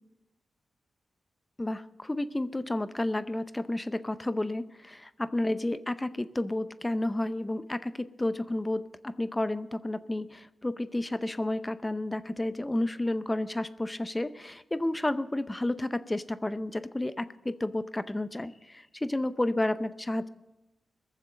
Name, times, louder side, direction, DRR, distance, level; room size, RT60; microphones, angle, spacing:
voice 1, 1.6-20.3, left 1 dB, 20° left, 13 dB, 0.7 m, -31 dB
20.5 x 7.3 x 6.5 m, 0.98 s
cardioid pair, 65°, 0 cm